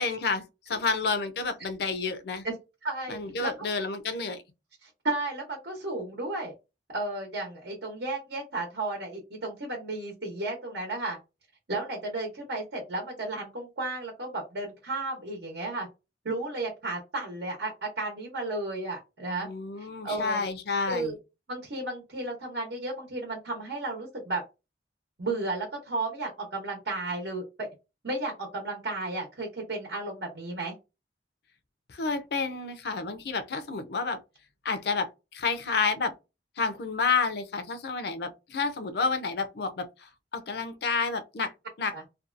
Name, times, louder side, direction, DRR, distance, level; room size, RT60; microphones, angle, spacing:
voice 1, 0.0-2.4 3.1-4.4 19.4-21.1 31.9-34.2 34.6-36.1 36.6-41.5 41.8-41.9, left 4 dB, 60° left, 0.5 m, -30 dB
voice 2, 2.8-3.7 4.8-6.5 6.9-11.2 11.7-15.9 16.2-19.5 19.8-20.5 20.8-21.1 21.5-24.4 25.2-27.7 28.0-30.7 41.9-42.0, right 2 dB, 70° right, 0.9 m, -33 dB
2.6 x 2.3 x 2.5 m
head